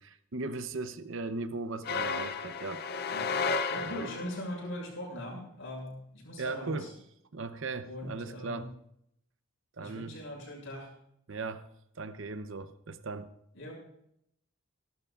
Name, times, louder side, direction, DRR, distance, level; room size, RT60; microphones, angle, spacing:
voice 1, 0.0-2.8 3.8-4.1 6.4-6.9 7.3-8.7 9.8-10.2 11.3-11.7 12.0-13.3, right 3 dB, 60° right, 11 dB, 0.8 m, -38 dB
sound 1, 1.8-4.5, left 4 dB, 45° left, 0.5 m, -33 dB
voice 2, 3.7-6.9 7.8-8.7 9.8-10.9 13.5-13.7, left 1 dB, 60° left, -1 dB, 6.5 m, -40 dB
25.5 x 12.5 x 2.5 m, 0.75 s
head